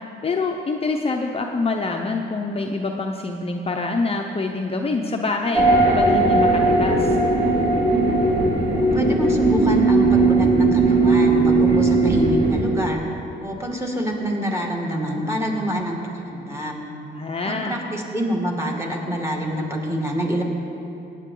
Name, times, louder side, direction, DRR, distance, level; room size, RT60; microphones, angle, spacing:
voice 1, 0.0-5.7 5.9-7.2 17.1-17.8, left 3 dB, 30° left, 2 dB, 0.7 m, -26 dB
sound 1, 5.5-12.6, right 2 dB, 40° right, 3.0 m, -18 dB
voice 2, 8.8-13.0 13.4-16.8 17.4-20.4, equal, 15° right, 0 dB, 2.2 m, -26 dB
18.0 x 9.1 x 3.9 m, 2.9 s
cardioid pair, 90°, 20 cm